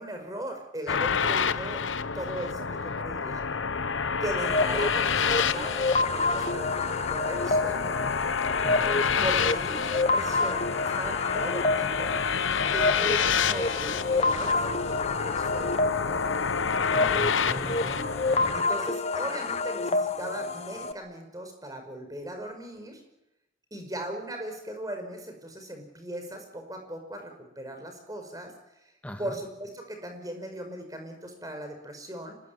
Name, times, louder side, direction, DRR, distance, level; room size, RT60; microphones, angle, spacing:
voice 1, 0.0-1.8 2.1-3.5 4.2-8.0 9.2-12.2 12.7-15.9 18.5-23.0 23.7-28.5 29.2-32.4, right 1 dB, 20° right, 5 dB, 5.2 m, -38 dB
sound 1, 0.9-18.6, left 6 dB, 90° left, 0.9 m, -28 dB
sound 2, 4.4-20.9, left 3 dB, 35° left, 1.1 m, -29 dB
voice 2, 8.6-9.4 16.9-18.0 29.0-29.4, equal, 5° left, 6 dB, 1.9 m, -40 dB
25.5 x 20.5 x 9.4 m, 0.91 s
head